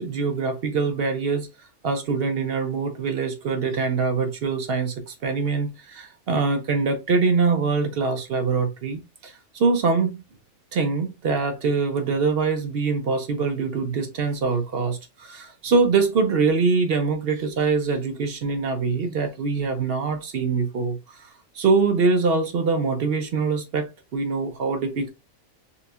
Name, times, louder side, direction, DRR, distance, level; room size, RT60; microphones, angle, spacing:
voice 1, 0.0-1.5 1.8-10.2 10.7-25.1, right 4 dB, 60° right, 0.7 m, -24 dB
4.0 x 2.7 x 2.4 m
omnidirectional pair, 1.4 m